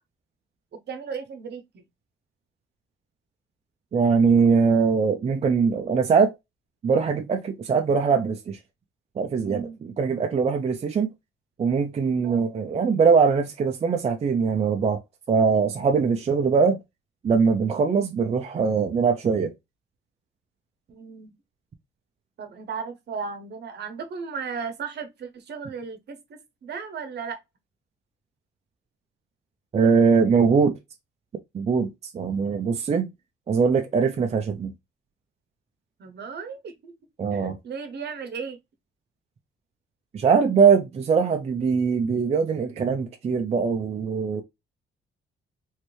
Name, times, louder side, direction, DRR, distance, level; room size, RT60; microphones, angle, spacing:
voice 1, 0.7-1.8 9.4-9.8 12.2-12.5 20.9-21.3 22.4-27.4 36.0-36.9 37.3-38.6, right 5 dB, 60° right, 0.9 m, -36 dB
voice 2, 3.9-6.3 6.8-8.6 9.2-11.1 11.6-15.0 15.3-16.8 17.2-19.5 29.7-30.8 31.5-33.1 33.5-34.7 37.2-37.6 40.1-44.4, right 5 dB, 35° right, 0.4 m, -22 dB
3.2 x 2.5 x 3.1 m
cardioid pair, 90°, 20 cm